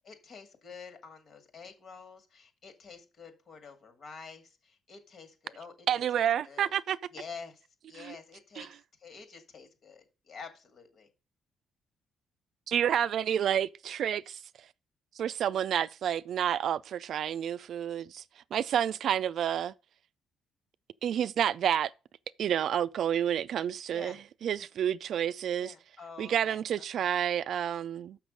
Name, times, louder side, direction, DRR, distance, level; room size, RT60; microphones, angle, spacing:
voice 1, 0.0-5.9 6.2-6.7 7.1-11.1 23.9-24.2 25.6-26.6 27.0-27.1, left 5 dB, 55° left, 2.1 m, -48 dB
voice 2, 5.9-7.0 8.0-8.1 8.6-8.7 12.7-14.4 15.2-18.2 18.5-19.7 21.0-21.9 22.4-24.2 24.4-25.7 26.2-28.2, right 9 dB, 65° right, 0.4 m, -29 dB
6.3 x 5.9 x 5.2 m
cardioid pair, 90°, 0 cm